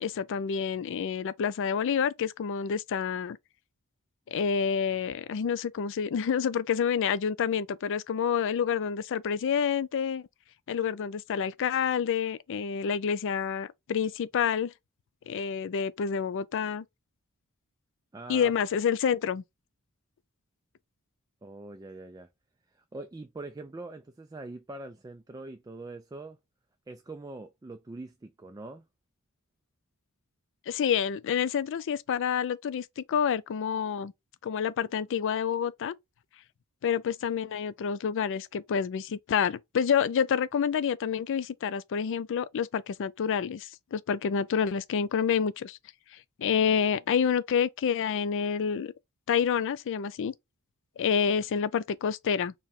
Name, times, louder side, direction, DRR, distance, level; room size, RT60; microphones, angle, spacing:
voice 1, 0.0-3.4 4.3-10.2 10.7-14.7 15.3-16.8 18.3-19.4 30.7-34.1 34.4-35.9 36.8-45.8 46.4-48.9 49.3-50.3 51.0-52.5, left 7 dB, 55° left, 0.4 m, -28 dB
voice 2, 18.1-18.5 21.4-22.3 22.7-26.4 26.9-28.9, right 2 dB, 15° right, 0.3 m, -43 dB
4.6 x 2.2 x 3.5 m
head